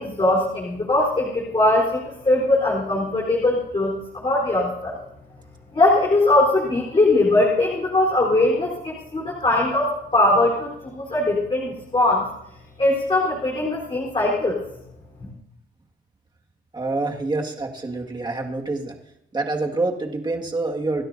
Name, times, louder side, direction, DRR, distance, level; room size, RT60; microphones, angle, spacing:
voice 1, 0.0-2.0 2.2-5.0 5.7-12.3 12.8-14.6, left 2 dB, 25° left, -4 dB, 4.1 m, -20 dB
voice 2, 16.7-18.9 19.3-21.0, right 2 dB, 20° right, 1 dB, 2.0 m, -26 dB
28.0 x 12.0 x 2.7 m, 0.78 s
cardioid pair, 90°, 20 cm